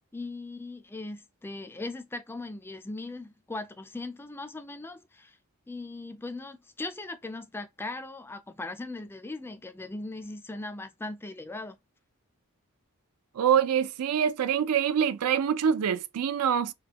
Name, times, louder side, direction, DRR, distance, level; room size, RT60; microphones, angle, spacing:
voice 1, 0.1-5.4 5.7-11.8, left 2 dB, 10° left, 0.3 m, -39 dB
voice 2, 13.4-16.7, right 8 dB, 85° right, 0.4 m, -25 dB
3.9 x 2.2 x 2.8 m
head